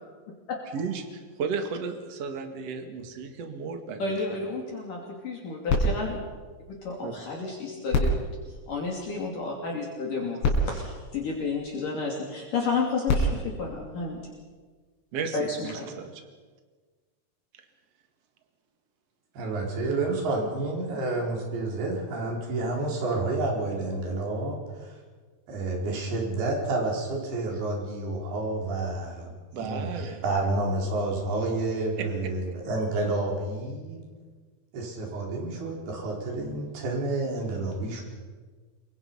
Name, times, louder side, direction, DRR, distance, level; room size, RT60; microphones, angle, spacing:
voice 1, 0.7-4.2 7.0-7.1 10.7-10.8 15.1-16.2 29.5-30.2 32.0-32.1, right 5 dB, 45° right, 6 dB, 2.5 m, -34 dB
voice 2, 4.0-6.2 6.8-8.1 8.7-14.2 15.3-15.9, left 4 dB, 50° left, -1 dB, 4.2 m, -31 dB
sound 1, 5.7-7.3 7.9-9.5 10.1-10.2 10.4-12.0 12.8-14.6 15.4-15.5, left 1 dB, 85° left, 6.5 m, -29 dB
voice 3, 19.3-24.9 25.5-34.0 34.7-38.0, right 2 dB, 60° right, -1 dB, 6.5 m, -29 dB
28.0 x 23.0 x 5.7 m, 1.4 s
omnidirectional pair, 5.1 m